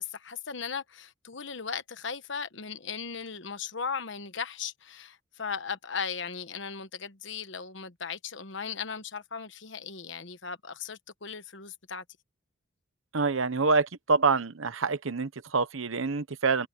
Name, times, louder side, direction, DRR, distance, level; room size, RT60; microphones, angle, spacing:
voice 1, 0.0-12.0, left 6 dB, 65° left, 1.2 m, -37 dB
voice 2, 13.1-16.7, right 4 dB, 85° right, 1.0 m, -26 dB
head